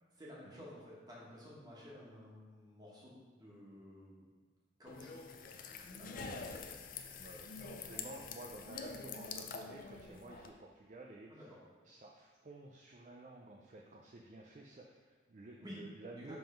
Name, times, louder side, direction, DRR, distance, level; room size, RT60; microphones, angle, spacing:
voice 1, 0.2-4.1 4.8-5.1 6.0-6.3 11.3-11.6 15.6-15.8 16.2-16.4, equal, 20° right, -6 dB, 1.5 m, -53 dB
sound 1, 4.9-10.5, left 5 dB, 50° left, 0.4 m, -46 dB
voice 2, 7.2-11.5 11.8-16.4, right 2 dB, 40° right, 0 dB, 0.4 m, -52 dB
5.2 x 3.7 x 5.7 m, 1.5 s
head